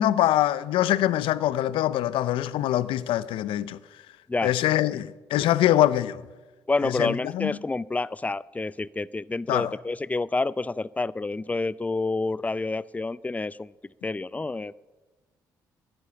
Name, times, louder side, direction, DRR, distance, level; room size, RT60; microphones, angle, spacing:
voice 1, 0.0-3.8 4.4-6.2 6.8-7.6 9.5-9.7, left 13 dB, 75° left, 0.5 m, -24 dB
voice 2, 6.7-13.7 14.0-14.7, left 3 dB, 15° left, 0.4 m, -28 dB
10.5 x 10.5 x 8.6 m
supercardioid pair, 55°, 9 cm